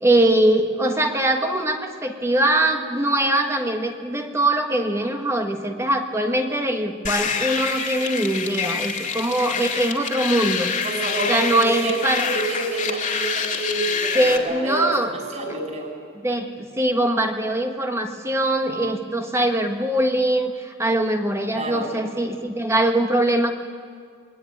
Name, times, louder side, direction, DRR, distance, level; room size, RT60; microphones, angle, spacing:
voice 1, 0.0-10.7 11.3-12.3 14.1-15.1 16.2-23.5, right 1 dB, 10° right, 4 dB, 1.4 m, -22 dB
sound 1, 7.0-14.4, left 6 dB, 35° left, 2.2 m, -27 dB
voice 2, 10.8-15.9 21.5-21.9, right 2 dB, 35° right, 1 dB, 6.0 m, -28 dB
25.0 x 21.5 x 9.4 m, 2.1 s
head